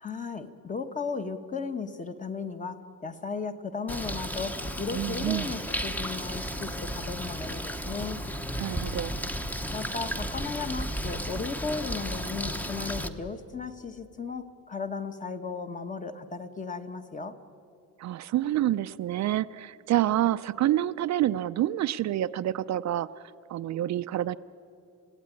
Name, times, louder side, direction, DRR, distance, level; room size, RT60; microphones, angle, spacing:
voice 1, 0.0-8.2 9.7-17.4, left 4 dB, 25° left, 8 dB, 1.2 m, -35 dB
Bird, 3.9-13.1, equal, 5° left, 0.8 m, -34 dB
voice 2, 4.9-5.5 8.6-9.2 18.0-23.1 23.5-24.4, right 13 dB, 55° right, 12 dB, 0.5 m, -27 dB
29.0 x 16.5 x 9.8 m, 2.6 s
cardioid pair, 170°, 32 cm